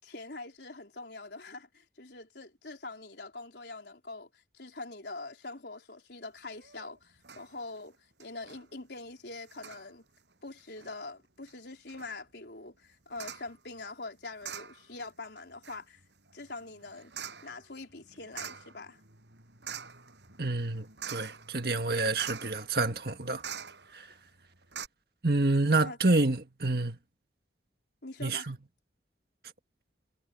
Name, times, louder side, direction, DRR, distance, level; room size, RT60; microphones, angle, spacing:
voice 1, 0.0-10.0 10.4-16.0 16.3-17.1 17.4-19.0 25.8-26.0 28.0-28.5, left 3 dB, 75° left, 3.9 m, -44 dB
sound 1, 6.6-6.9 7.2-7.5 7.8-7.9 8.2-8.6 9.5-9.9 10.6-10.9 11.5-11.6 11.9-12.1 13.1-13.5 14.4-15.1 15.4-24.1 24.4-24.5 24.7-24.9, right 7 dB, 85° right, 8.0 m, -45 dB
voice 2, 20.4-23.4 23.9-24.1 25.2-27.0 28.2-28.6, right 2 dB, 60° right, 1.8 m, -28 dB
head